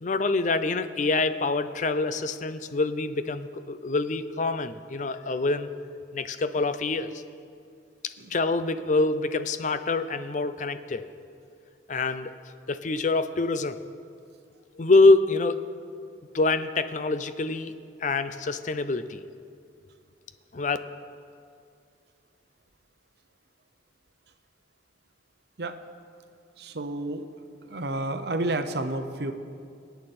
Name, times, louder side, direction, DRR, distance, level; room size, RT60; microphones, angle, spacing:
voice 1, 0.0-5.7 6.1-7.2 8.0-11.0 11.9-12.3 12.7-13.8 14.7-15.6 16.3-17.7 18.0-19.2 20.5-20.8, left 3 dB, 40° left, 11 dB, 0.5 m, -25 dB
voice 2, 26.6-27.2 27.7-29.3, right 2 dB, 60° right, 8 dB, 0.8 m, -30 dB
24.0 x 9.3 x 4.3 m, 2.3 s
head